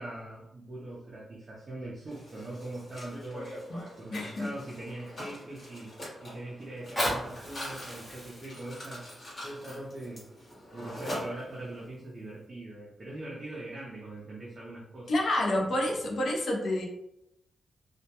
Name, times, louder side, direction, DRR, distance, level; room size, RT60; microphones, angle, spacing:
voice 1, 0.0-3.5 4.0-5.9 6.2-9.0 9.4-10.3 10.7-15.1 15.6-15.7, right 1 dB, 30° right, -5 dB, 0.4 m, -41 dB
Mechanisms, 2.1-11.9, equal, 35° left, 1.0 m, -44 dB
voice 2, 4.1-4.5 15.1-16.9, left 1 dB, 50° left, -1 dB, 0.5 m, -28 dB
Fire, 6.7-11.7 12.3-12.4, equal, 10° left, 0.9 m, -38 dB
2.2 x 2.1 x 2.7 m, 0.82 s
wide cardioid pair, 165°, 0 cm